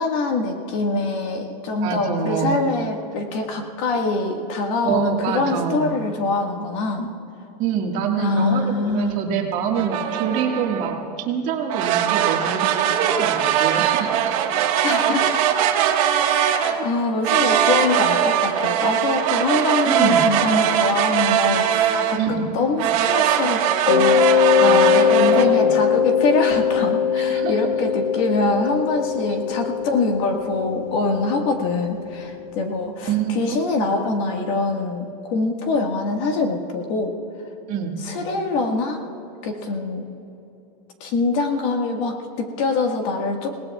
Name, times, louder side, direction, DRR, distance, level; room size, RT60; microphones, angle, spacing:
voice 1, 0.0-7.1 8.2-9.2 14.8-15.5 16.3-37.2 38.0-39.0 39.4-40.1 41.0-43.5, left 3 dB, 50° left, 3 dB, 1.7 m, -24 dB
voice 2, 1.8-2.6 4.8-5.9 7.6-14.3 14.9-15.0 19.9-20.2 22.2-22.4 24.6-25.1 25.4-25.7 27.3-27.5 33.0-34.1 37.7-38.0, right 7 dB, 40° right, 1 dB, 1.7 m, -26 dB
sound 1, 9.7-10.9 11.7-16.8 17.2-22.3 22.8-25.4, right 9 dB, 55° right, 1.5 m, -21 dB
Mallet percussion, 23.9-32.5, left 8 dB, 70° left, 1.7 m, -21 dB
29.5 x 18.5 x 2.4 m, 2.9 s
supercardioid pair, 155°, 21 cm